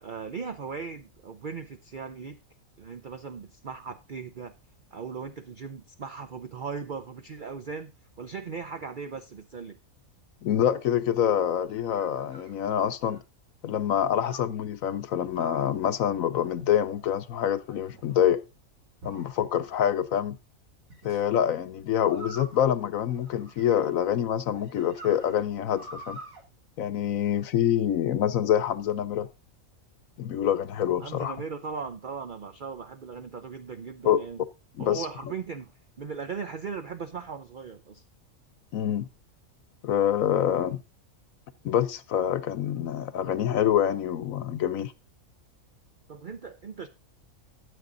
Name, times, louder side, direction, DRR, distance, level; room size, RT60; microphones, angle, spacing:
voice 1, 0.0-2.4 2.8-4.5 4.9-7.9 8.2-9.8 31.0-34.4 34.8-38.0 46.1-46.9, right 5 dB, 45° right, 0.7 m, -38 dB
voice 2, 10.4-13.2 13.6-18.4 19.0-20.4 21.0-26.2 26.8-29.3 30.2-31.4 34.0-34.2 34.8-35.1 38.7-39.1 39.8-40.8 41.6-44.9, left 10 dB, 75° left, 1.1 m, -26 dB
sound 1, 11.5-13.3 14.3-14.6 15.3-15.8 16.6-17.1 17.7-18.3 19.0-19.8 20.9-21.2 22.0-24.1 24.5-26.4, right 2 dB, 75° right, 3.6 m, -47 dB
12.5 x 7.9 x 3.9 m
omnidirectional pair, 1.5 m